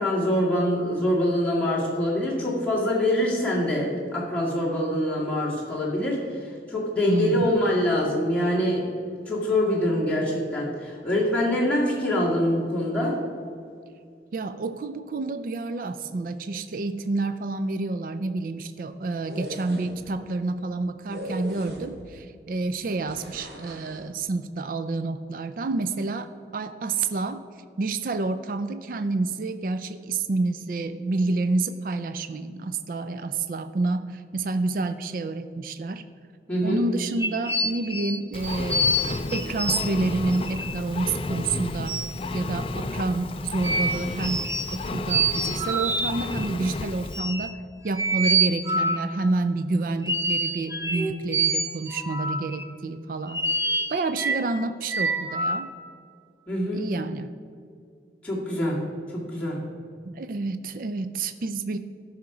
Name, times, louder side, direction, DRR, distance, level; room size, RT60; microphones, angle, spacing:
voice 1, 0.0-8.8 9.3-13.2 36.5-36.8 56.5-56.9 58.2-58.8 59.1-59.6, left 1 dB, 5° left, -7 dB, 2.1 m, -25 dB
voice 2, 7.1-7.6 14.3-27.4 27.8-36.0 36.6-42.0 42.3-53.4 53.9-55.7 56.7-57.3 60.1-61.8, right 3 dB, 50° right, 10 dB, 0.4 m, -29 dB
sound 1, 19.1-20.1 21.1-22.2 23.1-24.0, equal, 70° right, 1.6 m, -38 dB
sound 2, 37.1-39.9 40.3-40.8 41.3-41.4 41.9-42.1 43.6-44.8 45.1-46.5 47.1-47.5 47.9-49.1 50.0-52.6 53.3-54.5 54.9-55.6, right 2 dB, 15° right, 0.7 m, -26 dB
Engine, 38.3-47.2, left 2 dB, 30° left, 0.4 m, -32 dB
13.5 x 5.8 x 4.9 m, 2.3 s
head